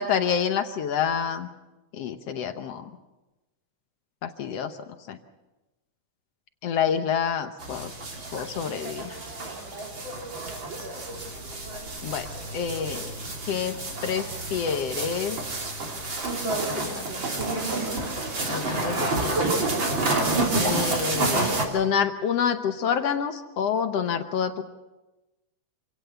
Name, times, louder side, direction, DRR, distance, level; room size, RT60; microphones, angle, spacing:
voice 1, 0.0-1.5 1.9-2.9 4.2-4.8 5.1-5.2 6.6-7.9 8.3-9.2 12.0-12.3 12.5-13.1 13.5-13.8 14.0-15.4 16.7-17.0 18.4-19.5 20.6-24.6, left 7 dB, 65° left, 8 dB, 1.7 m, -28 dB
sound 1, 7.6-21.6, right 2 dB, 35° right, 3.7 m, -29 dB
26.5 x 17.5 x 6.9 m, 1.0 s
omnidirectional pair, 3.7 m